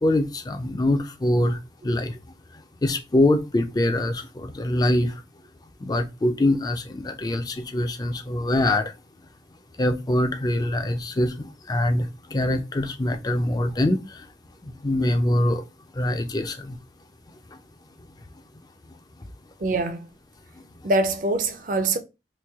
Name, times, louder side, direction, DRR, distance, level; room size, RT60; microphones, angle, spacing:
voice 1, 0.0-2.2 2.8-5.2 5.8-8.9 9.8-14.3 14.6-15.6 15.9-16.8 17.5-17.6, left 1 dB, 20° left, 0.4 m, -24 dB
voice 2, 19.6-20.1 20.8-22.0, right 2 dB, 45° right, 0.5 m, -24 dB
3.1 x 2.6 x 3.4 m
head